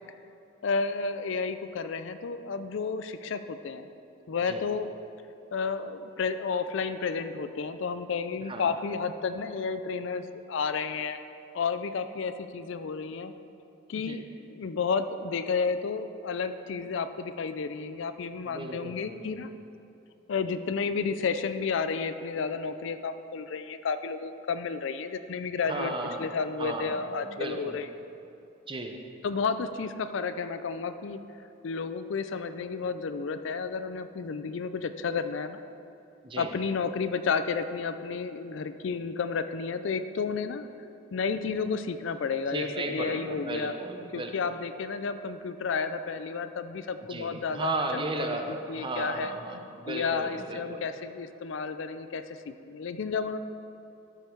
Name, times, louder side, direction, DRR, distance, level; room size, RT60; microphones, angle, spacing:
voice 1, 0.6-3.9 4.3-4.9 5.5-11.2 11.5-13.3 13.9-19.5 20.3-25.9 26.2-27.9 29.2-31.2 31.6-35.6 36.4-40.7 41.1-43.8 44.1-48.4 48.7-49.3 49.9-53.4, left 5 dB, 60° left, 10 dB, 0.4 m, -31 dB
voice 2, 18.5-19.4 25.7-27.8 28.7-29.0 36.2-36.6 42.5-44.5 47.1-50.8, right 2 dB, 25° right, 4 dB, 0.6 m, -35 dB
13.0 x 5.4 x 4.5 m, 2.8 s
head